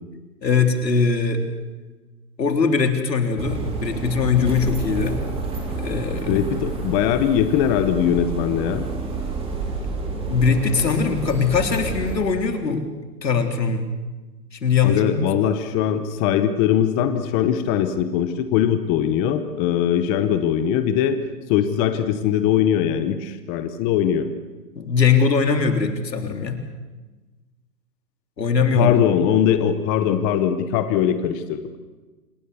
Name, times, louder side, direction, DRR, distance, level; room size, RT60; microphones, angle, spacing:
voice 1, 0.4-1.4 2.4-5.2 5.7-6.3 10.3-12.8 13.2-13.9 14.5-15.2 24.8-26.6 28.4-28.9, left 5 dB, 85° left, 4 dB, 3.8 m, -21 dB
sound 1, 3.4-12.2, right 3 dB, 10° right, 3.7 m, -29 dB
voice 2, 6.3-8.8 14.8-21.2 21.5-24.3 28.7-31.8, left 9 dB, 15° left, 9 dB, 0.8 m, -21 dB
27.0 x 19.5 x 6.9 m, 1.2 s
hypercardioid pair, 145°, 49 cm